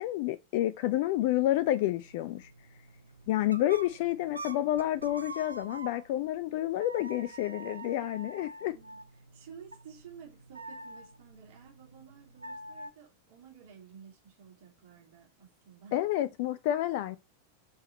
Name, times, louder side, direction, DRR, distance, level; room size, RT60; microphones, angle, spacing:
voice 1, 0.0-2.5 3.3-8.7 15.9-17.2, left 14 dB, 50° left, 0.4 m, -29 dB
sound 1, 1.3-6.3 6.8-12.9, right 2 dB, 80° right, 0.7 m, -47 dB
voice 2, 8.0-9.1 9.3-16.0, right 7 dB, 50° right, 3.1 m, -53 dB
6.0 x 5.5 x 4.0 m
figure-of-eight pair, 90°, 0 cm